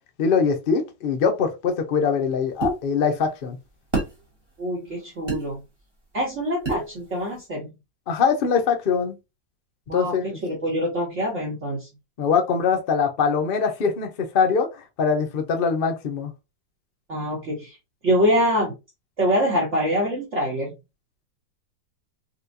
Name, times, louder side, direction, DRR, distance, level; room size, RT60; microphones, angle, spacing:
voice 1, 0.2-3.6 8.1-9.1 9.9-10.4 12.2-16.3, left 6 dB, 70° left, 0.5 m, -22 dB
sound 1, 2.6-2.8 3.9-4.1 5.3-5.4 6.6-6.9, right 3 dB, 15° right, 1.2 m, -25 dB
voice 2, 4.6-5.6 6.1-7.7 9.9-11.9 17.1-17.8 18.0-18.7 19.2-20.8, equal, 45° right, 1.2 m, -24 dB
4.1 x 2.2 x 2.6 m
omnidirectional pair, 2.0 m